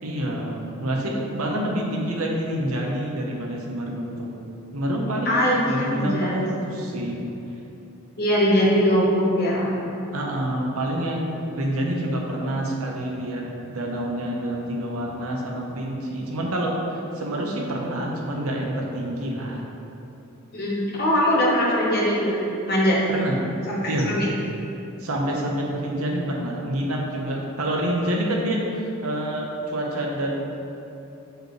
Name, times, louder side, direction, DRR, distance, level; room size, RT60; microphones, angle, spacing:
voice 1, 0.0-4.4 4.7-7.2 10.1-19.6 23.1-23.4 23.9-24.2 25.0-30.5, right 1 dB, 75° right, -1 dB, 0.9 m, -27 dB
voice 2, 5.2-6.5 6.9-7.0 8.2-9.9 20.5-23.0 23.7-24.3, equal, 45° left, -5 dB, 1.2 m, -22 dB
6.4 x 4.7 x 3.2 m, 2.9 s
head